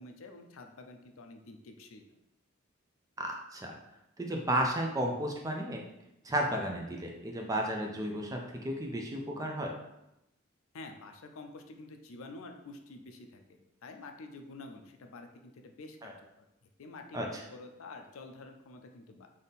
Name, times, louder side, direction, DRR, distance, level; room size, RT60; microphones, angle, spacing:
voice 1, 0.0-2.0 10.7-19.3, left 3 dB, 75° left, 5 dB, 0.5 m, -49 dB
voice 2, 3.2-3.8 4.2-5.8 6.2-9.7 16.0-16.1 17.1-17.4, right 1 dB, 15° right, 1 dB, 0.4 m, -33 dB
3.6 x 2.6 x 4.0 m, 0.88 s
head